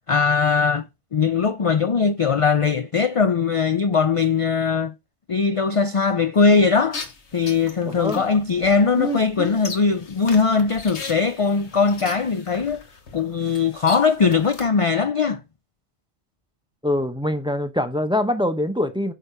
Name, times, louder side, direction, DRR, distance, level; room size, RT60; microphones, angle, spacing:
voice 1, 0.1-0.9 1.1-4.9 5.3-7.0 7.3-12.8 13.1-15.4, left 5 dB, 45° left, 0.5 m, -20 dB
sound 1, 6.9-14.7, left 2 dB, 85° left, 1.7 m, -35 dB
voice 2, 7.8-8.2 16.8-19.1, left 1 dB, 5° right, 0.9 m, -24 dB
8.8 x 5.0 x 5.7 m
omnidirectional pair, 1.1 m